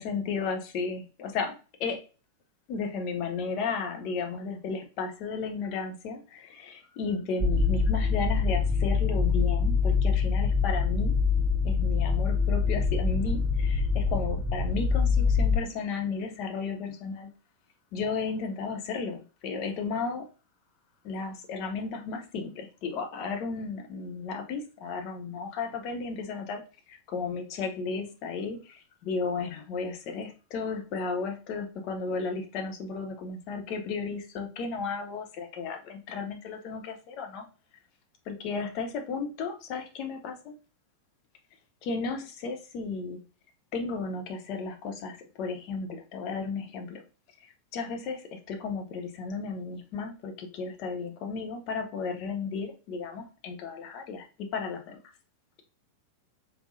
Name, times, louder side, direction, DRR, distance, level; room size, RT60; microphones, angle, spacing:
voice 1, 0.0-2.0 2.7-11.1 11.6-17.3 17.9-20.3 21.0-26.6 26.9-37.4 38.3-40.6 41.8-43.2 43.7-47.0 47.7-55.0, left 4 dB, 40° left, 4 dB, 0.9 m, -34 dB
sound 1, 7.4-15.6, left 5 dB, 25° right, 0.7 m, -25 dB
4.4 x 3.6 x 2.6 m, 0.35 s
figure-of-eight pair, 90°, 0 cm